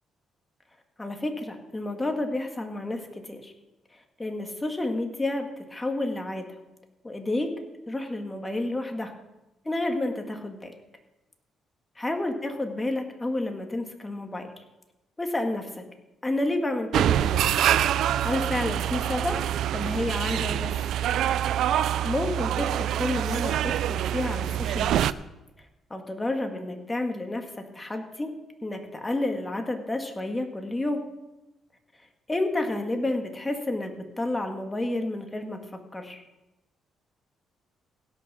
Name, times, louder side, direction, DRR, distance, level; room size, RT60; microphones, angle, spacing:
voice 1, 1.0-3.5 4.2-6.5 7.0-7.5 7.9-9.1 9.7-10.7 12.0-14.6 15.2-15.8 16.2-17.4 18.2-19.4 19.7-20.7 22.0-25.0 25.9-28.3 28.6-31.0 32.3-35.6 35.9-36.2, left 2 dB, 15° left, 4 dB, 2.0 m, -30 dB
sound 1, 16.9-25.1, right 11 dB, 80° right, 0.4 m, -25 dB
16.5 x 6.4 x 6.3 m, 0.97 s
cardioid pair, 90°, 0 cm